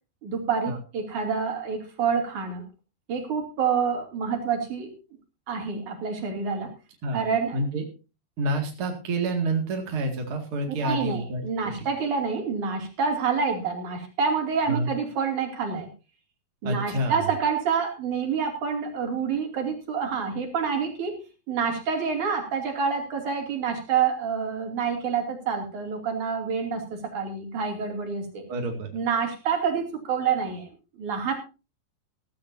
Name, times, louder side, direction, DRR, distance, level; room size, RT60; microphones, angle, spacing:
voice 1, 0.2-2.6 3.1-4.9 5.5-6.7 7.1-7.6 10.7-15.9 16.6-21.2 21.5-28.4 28.9-30.7 31.0-31.3, right 6 dB, 55° right, 3 dB, 4.2 m, -27 dB
voice 2, 7.5-7.9 8.4-11.4 11.7-11.9 14.7-14.9 16.6-17.2 28.5-28.9, right 2 dB, 40° right, 2 dB, 2.7 m, -28 dB
15.5 x 15.5 x 2.7 m, 0.31 s
omnidirectional pair, 4.2 m